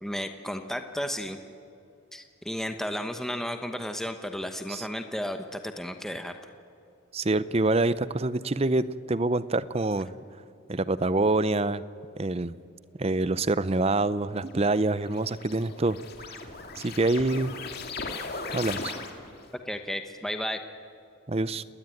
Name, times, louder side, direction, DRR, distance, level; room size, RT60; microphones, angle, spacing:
voice 1, 0.0-1.4 2.1-6.3 19.7-20.6, equal, ahead, 6 dB, 1.0 m, -33 dB
voice 2, 7.1-10.1 10.7-11.8 12.2-12.5 13.0-17.5 18.5-18.9 21.3-21.6, right 2 dB, 30° right, 16 dB, 0.6 m, -26 dB
sound 1, 14.5-19.4, left 4 dB, 50° left, 2.4 m, -38 dB
29.5 x 20.5 x 9.2 m, 2.6 s
head